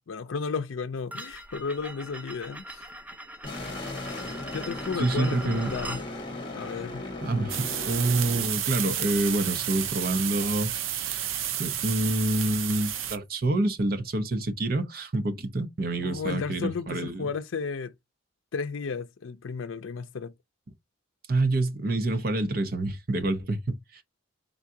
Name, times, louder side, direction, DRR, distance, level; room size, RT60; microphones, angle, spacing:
voice 1, 0.0-2.8 4.5-6.0 6.5-7.0 16.0-17.9 18.5-20.3, left 5 dB, 85° left, 0.5 m, -33 dB
sound 1, 1.1-6.1, right 1 dB, 10° right, 0.4 m, -41 dB
sound 2, 3.4-8.5, left 2 dB, 25° left, 1.5 m, -37 dB
voice 2, 5.0-5.7 7.2-11.2 11.6-17.3 21.3-24.0, right 2 dB, 50° right, 0.8 m, -27 dB
sound 3, 7.5-13.2, right 10 dB, 90° right, 0.6 m, -31 dB
3.9 x 3.6 x 2.7 m
head